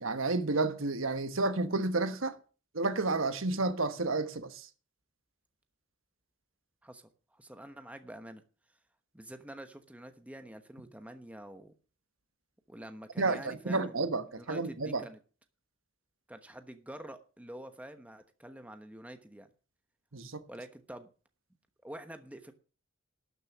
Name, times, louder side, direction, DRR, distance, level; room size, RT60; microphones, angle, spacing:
voice 1, 0.0-2.4 2.7-4.7 13.2-15.0 20.1-20.4, right 3 dB, 80° right, 1.3 m, -31 dB
voice 2, 6.8-8.4 9.1-11.7 12.7-14.0 14.3-15.2 16.3-19.5 20.5-21.1 21.8-22.5, right 1 dB, 5° right, 1.1 m, -47 dB
12.5 x 6.5 x 7.3 m
head